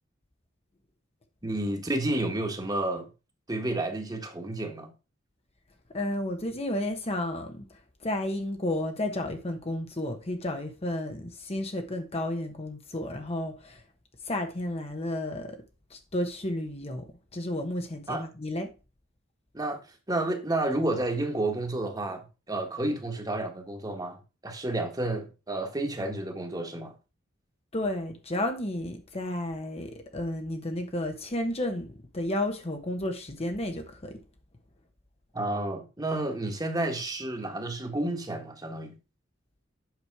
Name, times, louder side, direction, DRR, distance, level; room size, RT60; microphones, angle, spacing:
voice 1, 1.4-3.1 3.5-4.9 18.1-18.3 19.5-19.8 20.1-24.2 24.4-26.9 35.3-38.9, right 2 dB, 20° right, 1.6 m, -30 dB
voice 2, 5.9-7.6 8.0-13.8 14.3-15.6 15.9-17.1 17.3-18.7 27.7-34.2, left 1 dB, 30° left, 1.0 m, -32 dB
8.3 x 6.2 x 4.7 m
head